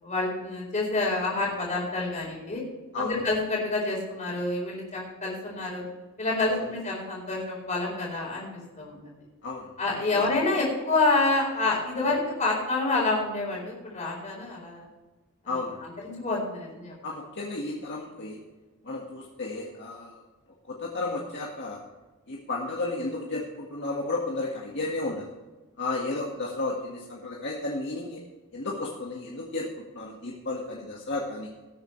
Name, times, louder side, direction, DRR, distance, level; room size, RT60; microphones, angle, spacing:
voice 1, 0.0-2.6 2.9-5.8 6.2-8.5 8.8-9.2 9.8-14.9 15.4-15.5 15.8-16.9, left 2 dB, 35° left, -4 dB, 4.4 m, -28 dB
voice 2, 15.5-15.8 17.0-18.4 18.8-20.2 20.7-21.8 22.3-25.3 25.8-28.2 28.5-31.5, left 2 dB, 55° left, -3 dB, 1.8 m, -33 dB
19.0 x 8.8 x 3.3 m, 1.2 s
head